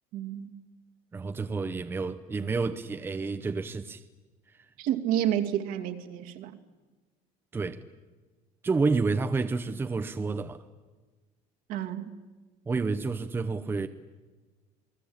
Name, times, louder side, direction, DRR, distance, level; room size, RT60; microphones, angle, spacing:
voice 1, 0.1-0.5 4.8-6.6 11.7-12.1, right 11 dB, 60° right, 2.4 m, -30 dB
voice 2, 1.1-4.0 7.5-7.8 8.6-10.6 12.7-13.9, right 4 dB, 15° right, 0.8 m, -29 dB
28.5 x 20.5 x 8.8 m
cardioid pair, 165°, 16 cm